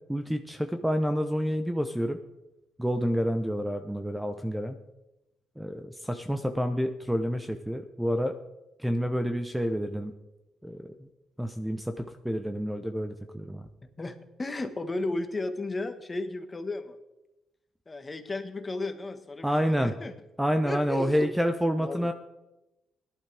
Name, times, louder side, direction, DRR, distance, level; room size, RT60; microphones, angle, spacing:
voice 1, 0.1-2.2 2.8-4.8 5.6-8.3 8.8-10.1 10.6-11.1 11.4-13.7 19.4-19.9 20.4-22.1, equal, 5° right, 7 dB, 0.8 m, -28 dB
voice 2, 14.0-17.0 17.9-20.1 20.6-21.3 21.8-22.1, left 2 dB, 25° left, 7 dB, 1.4 m, -34 dB
17.0 x 11.5 x 3.4 m, 0.96 s
cardioid pair, 90°, 0 cm